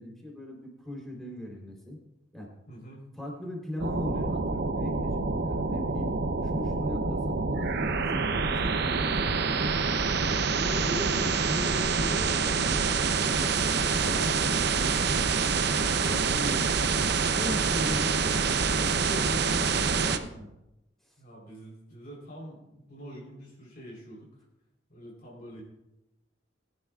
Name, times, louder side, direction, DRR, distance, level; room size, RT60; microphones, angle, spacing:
voice 1, 0.0-2.0 2.3-2.5 3.1-6.1 6.4-8.4 8.8-9.7 10.6-15.5 16.0-18.4 18.7-20.5 21.1-21.2, left 1 dB, ahead, -2 dB, 3.6 m, -38 dB
voice 2, 2.7-3.1 21.2-24.4 24.9-25.6, equal, 50° left, -3 dB, 3.9 m, -46 dB
sound 1, 3.8-20.2, right 5 dB, 60° right, 0.7 m, -26 dB
22.0 x 11.0 x 2.4 m, 0.89 s
head